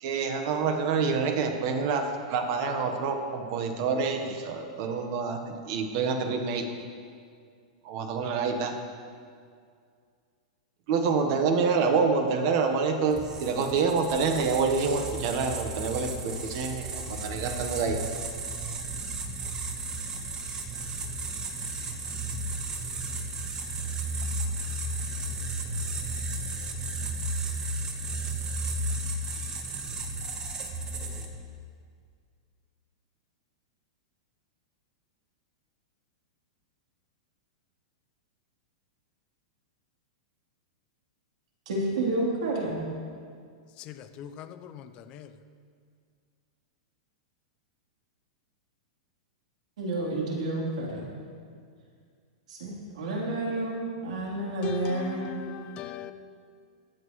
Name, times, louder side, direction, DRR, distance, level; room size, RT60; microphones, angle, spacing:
voice 1, 0.0-6.7 7.8-8.7 10.9-18.1, right 5 dB, 40° right, 1.2 m, -27 dB
sound 1, 13.1-31.5, right 2 dB, 15° right, 0.9 m, -34 dB
voice 2, 41.7-42.8 49.8-51.1 52.5-55.3, right 2 dB, 80° right, 3.3 m, -30 dB
voice 3, 43.8-45.3 54.6-56.1, left 10 dB, 30° left, 0.5 m, -39 dB
23.0 x 7.8 x 3.1 m
supercardioid pair, 165°, 4 cm